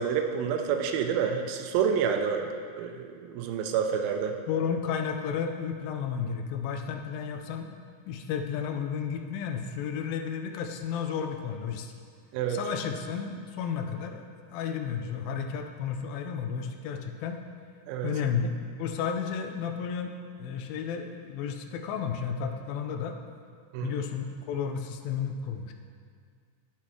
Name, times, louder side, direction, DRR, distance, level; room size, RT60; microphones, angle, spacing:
voice 1, 0.0-2.5 2.8-4.3 12.3-12.6 17.9-18.1 23.7-23.9, right 7 dB, 90° right, 5 dB, 2.4 m, -28 dB
voice 2, 4.5-7.8 8.1-11.9 12.5-17.4 18.0-23.2 23.8-25.7, left 7 dB, 85° left, 4 dB, 2.3 m, -32 dB
11.5 x 5.8 x 3.1 m, 2.1 s
omnidirectional pair, 4.2 m